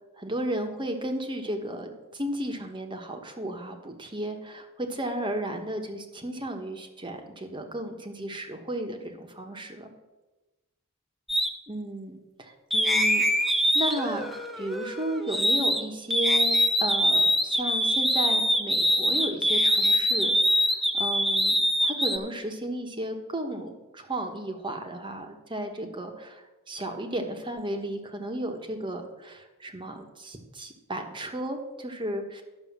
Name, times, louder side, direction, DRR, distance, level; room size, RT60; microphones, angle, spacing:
voice 1, 0.2-9.9 11.7-13.5 13.7-32.4, right 1 dB, 25° right, 4 dB, 1.2 m, -34 dB
sound 1, 11.3-11.5 12.7-15.8 16.1-22.2, equal, ahead, 0.8 m, -24 dB
11.5 x 6.4 x 7.3 m, 1.1 s
head